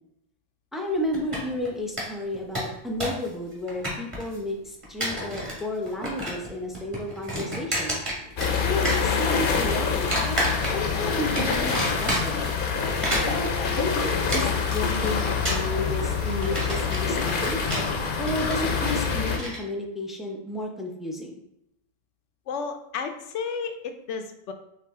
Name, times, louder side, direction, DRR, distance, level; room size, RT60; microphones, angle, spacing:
voice 1, 0.7-8.0 8.6-10.4 10.7-12.4 13.3-17.6 18.2-21.4, left 1 dB, ahead, 1 dB, 0.5 m, -32 dB
sound 1, 1.1-1.7 2.0-2.1 2.3-3.3 3.5-4.4 4.8-5.6 5.9-6.5 6.7-8.6 8.8-9.6 10.1-11.0 11.4-12.5 12.9-19.6, equal, 25° right, 1.5 m, -30 dB
sound 2, 8.4-19.4, left 5 dB, 55° left, 0.7 m, -26 dB
voice 2, 22.5-24.5, left 5 dB, 90° left, 7 dB, 0.9 m, -32 dB
4.6 x 3.2 x 3.5 m, 0.81 s
omnidirectional pair, 1.2 m